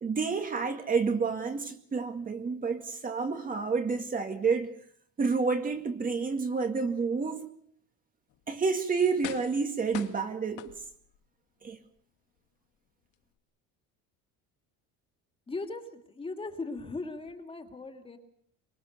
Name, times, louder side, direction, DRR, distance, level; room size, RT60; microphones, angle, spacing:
voice 1, 0.0-4.7 5.2-7.5 8.5-10.7 11.6-11.8, right 5 dB, 25° right, 2.1 m, -29 dB
sound 1, 8.3-8.4 9.2-9.7 9.9-11.2 11.7-11.8, left 13 dB, 65° left, 2.1 m, -42 dB
voice 2, 15.5-18.2, left 3 dB, 15° left, 2.8 m, -38 dB
24.5 x 22.0 x 6.8 m
cardioid pair, 145°, 32 cm